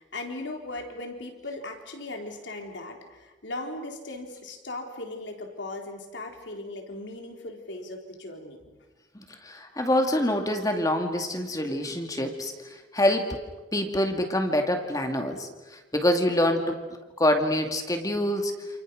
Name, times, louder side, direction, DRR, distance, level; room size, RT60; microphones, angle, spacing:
voice 1, 0.0-8.8, left 2 dB, 65° left, 3 dB, 4.0 m, -38 dB
voice 2, 9.1-13.4 13.7-16.8 17.2-18.5, left 1 dB, 20° left, 4 dB, 2.3 m, -26 dB
29.0 x 28.0 x 6.5 m, 1.2 s
head